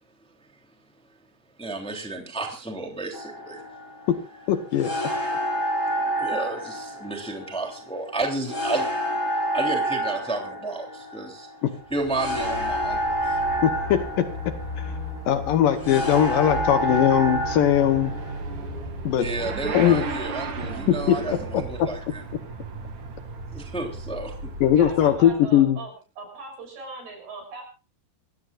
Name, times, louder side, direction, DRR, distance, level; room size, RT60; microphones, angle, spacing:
voice 1, 1.6-3.6 6.2-8.9 9.5-11.5 11.9-13.4 19.2-22.2 23.5-24.5, right 2 dB, ahead, 2 dB, 2.5 m, -32 dB
sound 1, 3.1-18.4, right 1 dB, 20° left, 4.7 m, -29 dB
voice 2, 4.5-4.9 11.6-11.7 13.6-14.3 14.8-14.9 15.3-18.1 19.1-19.3 19.7-20.0 20.9-21.2 21.8-21.9 24.6-25.8, left 10 dB, 70° left, 9 dB, 2.5 m, -20 dB
Motorcycle / Accelerating revving vroom, 11.8-25.6, right 2 dB, 55° right, 3.7 m, -35 dB
voice 3, 24.7-27.6, right 3 dB, 80° right, 3 dB, 8.6 m, -39 dB
25.5 x 16.5 x 2.5 m, 0.35 s
omnidirectional pair, 4.5 m